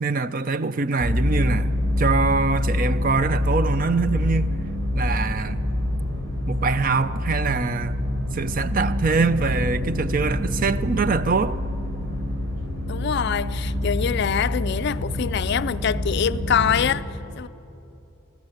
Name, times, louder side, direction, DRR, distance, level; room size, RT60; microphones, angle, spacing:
voice 1, 0.0-4.5 4.9-5.6 6.5-8.0 8.3-11.6, right 4 dB, 40° right, 0.5 m, -24 dB
sound 1, 1.0-16.9, left 1 dB, 65° right, 4.9 m, -26 dB
voice 2, 12.9-17.1 17.4-17.5, left 7 dB, 50° left, 0.4 m, -24 dB
23.0 x 15.0 x 8.0 m
head